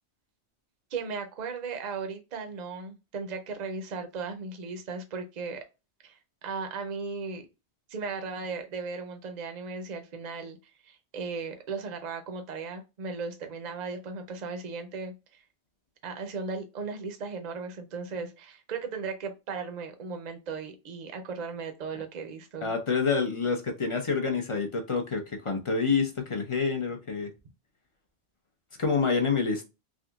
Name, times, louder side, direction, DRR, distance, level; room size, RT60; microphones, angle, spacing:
voice 1, 0.9-5.6 6.0-7.5 7.9-10.6 10.8-15.4 16.0-22.7, right 4 dB, 45° right, 0.7 m, -36 dB
voice 2, 22.6-27.3 28.8-29.6, left 5 dB, 40° left, 0.5 m, -27 dB
3.5 x 2.7 x 2.3 m
omnidirectional pair, 1.2 m